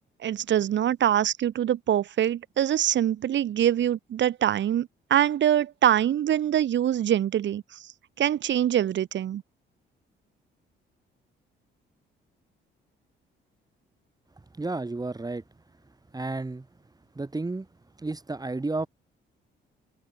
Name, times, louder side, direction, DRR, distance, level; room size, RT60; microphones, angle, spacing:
voice 1, 0.2-7.8 8.2-9.4, right 11 dB, 65° right, 2.3 m, -24 dB
voice 2, 14.5-15.4 16.1-16.7 17.1-17.7 18.0-18.9, right 3 dB, 20° right, 4.9 m, -31 dB
open air
cardioid pair, 90°, 20 cm